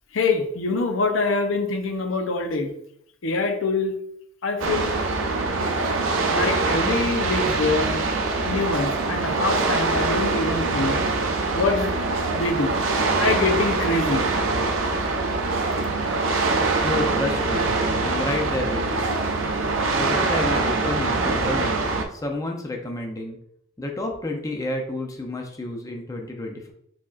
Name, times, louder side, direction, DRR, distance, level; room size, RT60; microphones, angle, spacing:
voice 1, 0.1-2.7 3.2-3.9 4.4-4.9 6.3-8.1 8.5-11.0 11.5-12.0 12.3-12.8 13.2-14.3, left 3 dB, 85° left, 5 dB, 0.7 m, -24 dB
sound 1, 4.6-22.0, right 3 dB, 85° right, 0.6 m, -24 dB
voice 2, 16.8-17.7 18.0-19.1 19.9-23.4 23.8-26.7, left 2 dB, 15° left, 2 dB, 0.5 m, -30 dB
4.6 x 4.3 x 2.4 m, 0.71 s
head